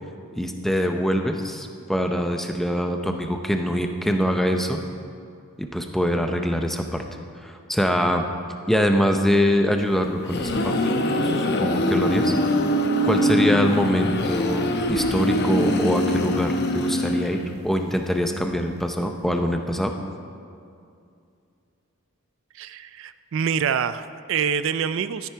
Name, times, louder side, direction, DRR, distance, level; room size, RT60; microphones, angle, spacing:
voice 1, 0.4-4.8 5.6-7.0 7.4-8.3 8.7-10.8 11.2-12.3 13.0-19.9, equal, ahead, 4 dB, 0.6 m, -24 dB
sound 1, 9.9-17.7, left 1 dB, 50° left, 0.8 m, -23 dB
voice 2, 22.5-25.3, right 7 dB, 55° right, 12 dB, 0.3 m, -26 dB
12.5 x 10.0 x 4.6 m, 2.4 s
head